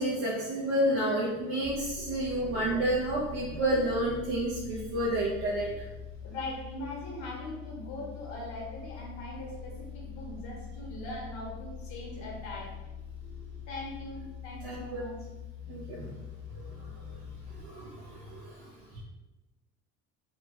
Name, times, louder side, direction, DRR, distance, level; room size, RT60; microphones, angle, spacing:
voice 1, 0.0-5.8 14.6-15.1 15.6-16.2 16.5-17.2 17.5-18.7, right 1 dB, 90° right, -7 dB, 0.8 m, -30 dB
sound 1, 1.6-17.6, left 7 dB, 45° right, 0.6 m, -44 dB
voice 2, 6.2-12.8 13.2-15.1, left 1 dB, 70° left, -2 dB, 0.9 m, -41 dB
2.8 x 2.4 x 2.8 m, 1.1 s
cardioid pair, 120°, 30 cm